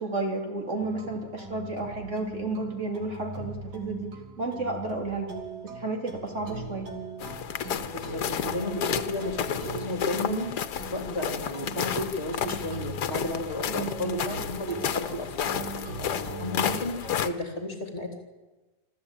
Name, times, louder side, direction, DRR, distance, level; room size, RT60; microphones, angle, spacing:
voice 1, 0.0-5.3 5.6-6.9 13.7-14.0, right 2 dB, 45° right, 2 dB, 3.1 m, -32 dB
sound 1, 0.7-17.1, right 4 dB, 85° right, 3.3 m, -41 dB
sound 2, 7.2-17.3, left 8 dB, 85° left, 1.6 m, -32 dB
voice 2, 7.9-10.5 10.9-18.2, left 1 dB, 40° left, 4 dB, 3.5 m, -33 dB
26.0 x 13.5 x 8.8 m, 1.2 s
omnidirectional pair, 1.7 m